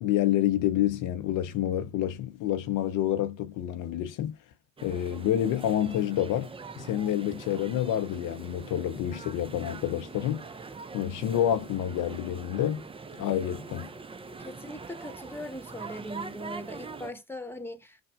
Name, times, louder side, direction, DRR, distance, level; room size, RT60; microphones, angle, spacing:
voice 1, 0.0-4.4 4.8-6.5 6.8-10.4 10.9-12.9 13.2-13.9, left 11 dB, 55° left, 0.6 m, -28 dB
sound 1, 4.8-17.1, right 4 dB, 15° right, 0.5 m, -43 dB
voice 2, 14.4-18.0, left 1 dB, 5° left, 1.1 m, -40 dB
6.0 x 2.1 x 2.3 m
figure-of-eight pair, 45°, 38 cm